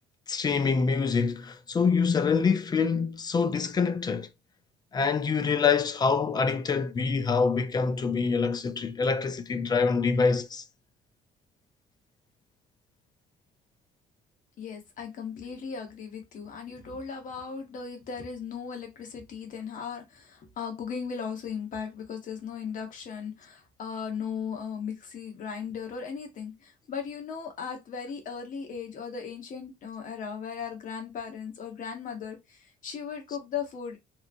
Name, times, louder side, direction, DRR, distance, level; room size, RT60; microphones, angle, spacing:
voice 1, 0.3-4.3 4.9-10.6, left 5 dB, 25° left, 0.4 m, -25 dB
voice 2, 14.6-34.0, left 6 dB, 50° left, 1.0 m, -37 dB
3.0 x 2.1 x 2.5 m
cardioid pair, 110°, 17 cm